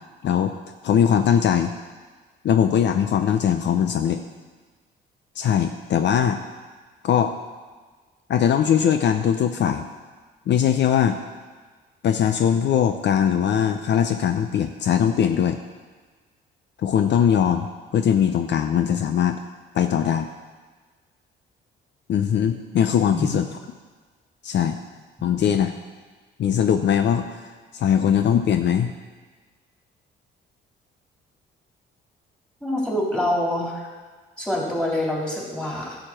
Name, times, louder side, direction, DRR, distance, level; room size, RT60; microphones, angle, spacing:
voice 1, 0.8-1.7 2.4-4.2 5.4-6.4 7.0-7.3 8.3-9.9 10.5-11.2 12.0-15.6 16.8-17.7 17.9-19.4 19.7-20.3 22.1-23.4 24.4-24.8 25.2-25.7 26.4-27.3 27.7-28.9, left 8 dB, 65° left, 7 dB, 0.6 m, -20 dB
voice 2, 23.1-23.4 32.6-33.9 34.4-36.0, left 1 dB, 5° left, -3 dB, 3.5 m, -25 dB
11.5 x 5.0 x 7.5 m, 1.4 s
cardioid pair, 90°, 20 cm